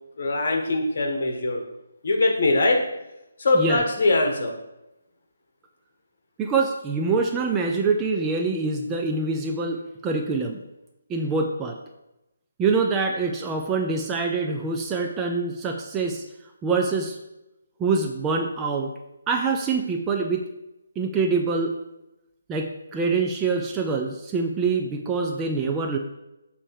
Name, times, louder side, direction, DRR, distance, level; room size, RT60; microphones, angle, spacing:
voice 1, 0.2-1.6 2.0-2.8 3.4-4.5, left 2 dB, 50° left, 2 dB, 1.4 m, -22 dB
voice 2, 6.4-10.6 11.1-11.8 12.6-16.2 16.6-17.2 17.8-18.9 19.3-20.5 21.0-21.8 22.5-26.0, right 4 dB, 15° right, 2 dB, 0.5 m, -25 dB
7.4 x 3.4 x 4.8 m, 0.92 s
figure-of-eight pair, 145°, 0 cm